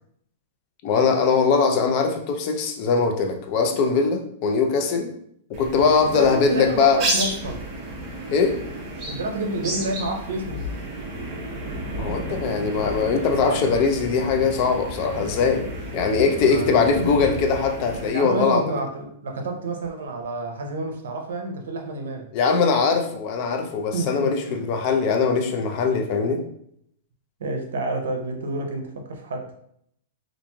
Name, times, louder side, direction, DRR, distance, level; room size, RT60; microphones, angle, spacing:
voice 1, 0.8-5.1 5.5-7.0 8.3-8.5 12.0-15.6 15.9-18.6 22.3-26.4, left 5 dB, 35° left, 4 dB, 0.3 m, -21 dB
sound 1, 5.5-18.1, right 1 dB, 25° right, 0.7 m, -32 dB
voice 2, 6.0-7.6 9.1-10.7 16.4-16.8 18.1-22.3 23.9-24.3 27.4-29.5, right 2 dB, 85° right, 4 dB, 0.6 m, -29 dB
3.0 x 2.4 x 2.2 m, 0.70 s
supercardioid pair, 170°, 0 cm